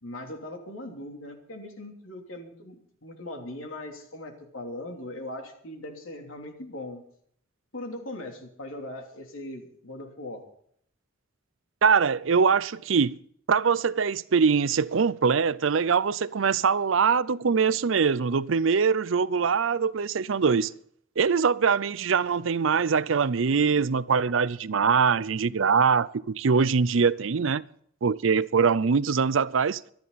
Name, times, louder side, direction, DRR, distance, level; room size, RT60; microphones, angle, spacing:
voice 1, 0.0-7.0 7.7-10.5, left 1 dB, 85° left, 3.2 m, -39 dB
voice 2, 11.8-13.2 13.5-20.7 21.2-27.6 28.0-29.8, right 5 dB, 70° right, 0.5 m, -23 dB
24.5 x 10.5 x 4.1 m
head